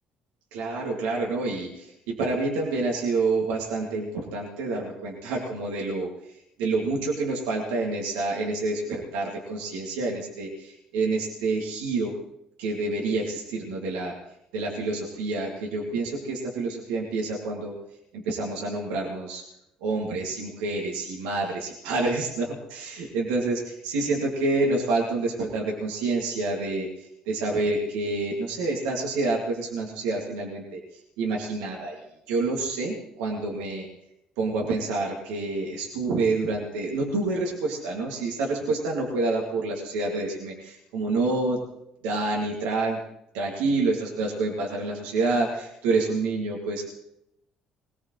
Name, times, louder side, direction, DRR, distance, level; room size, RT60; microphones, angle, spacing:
voice 1, 0.5-6.1 6.6-12.1 12.6-14.1 14.5-17.8 18.1-19.4 19.8-32.0 32.3-33.9 34.4-41.6 42.0-43.0 43.3-46.9, right 3 dB, 80° right, -2 dB, 2.5 m, -28 dB
22.0 x 17.5 x 3.3 m, 0.81 s
hypercardioid pair, 55°, 3 cm